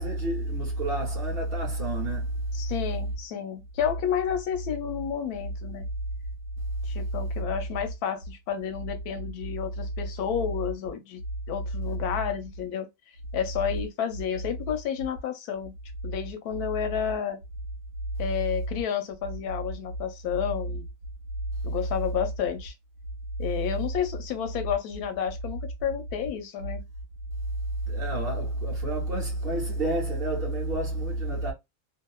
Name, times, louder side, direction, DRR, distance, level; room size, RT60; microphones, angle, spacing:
voice 1, 0.0-2.3 27.9-31.5, right 1 dB, 50° right, 0.8 m, -29 dB
voice 2, 2.5-5.8 6.8-11.2 11.5-12.9 13.3-15.7 16.0-17.4 18.2-20.8 21.6-22.7 23.4-26.8, left 8 dB, 90° left, 1.1 m, -31 dB
2.8 x 2.4 x 2.2 m
omnidirectional pair, 1.6 m